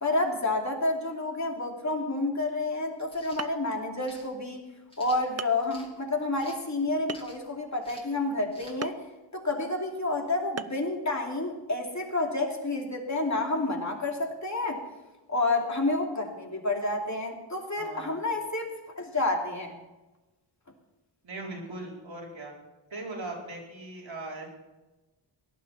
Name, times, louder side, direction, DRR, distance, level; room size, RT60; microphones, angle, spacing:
voice 1, 0.0-4.6 5.0-9.0 9.3-14.8 15.3-19.8, left 2 dB, 35° left, 1 dB, 2.9 m, -29 dB
sound 1, 3.0-3.4 4.0-4.3 4.9-5.9 6.4-6.7 7.1-7.5 7.8-8.1 8.5-8.8, left 1 dB, 10° left, 2.9 m, -50 dB
sound 2, 3.0-3.1 3.4-3.8 4.6-4.7 5.4-5.7 7.1-7.5 8.8-9.1 10.6-10.9, right 6 dB, 35° right, 0.5 m, -37 dB
voice 2, 17.8-18.2 21.2-22.5 22.9-24.5, right 2 dB, 75° right, -2 dB, 4.6 m, -39 dB
18.0 x 11.0 x 5.8 m, 1.1 s
wide cardioid pair, 75°, 46 cm